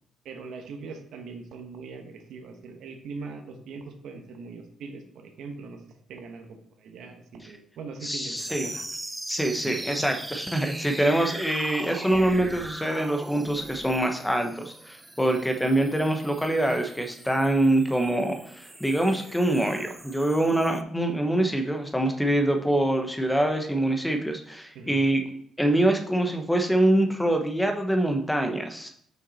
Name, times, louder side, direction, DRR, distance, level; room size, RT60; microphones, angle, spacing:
voice 1, 0.2-5.8 6.1-8.8 9.6-10.1 15.2-15.5 24.7-25.0, right 4 dB, 75° right, 5 dB, 1.1 m, -41 dB
voice 2, 8.0-8.8 9.3-25.2 25.6-28.9, right 1 dB, 5° left, 4 dB, 1.0 m, -25 dB
sound 1, 8.4-20.8, right 1 dB, 10° right, 0.5 m, -40 dB
5.9 x 5.9 x 4.1 m, 0.64 s
cardioid pair, 90°, 0 cm